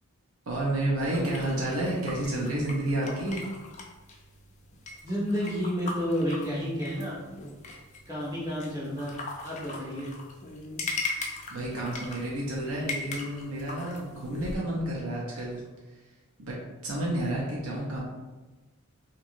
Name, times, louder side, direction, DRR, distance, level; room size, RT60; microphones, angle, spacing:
voice 1, 0.5-3.4 11.5-15.6 16.4-16.6 16.8-18.0, right 1 dB, 85° right, -4 dB, 0.6 m, -30 dB
sound 1, 1.1-14.6, left 3 dB, 35° left, 0.4 m, -40 dB
voice 2, 5.0-7.2 8.1-9.2 9.4-10.1, equal, 15° right, -9 dB, 1.1 m, -30 dB
3.0 x 2.7 x 2.5 m, 1.2 s
head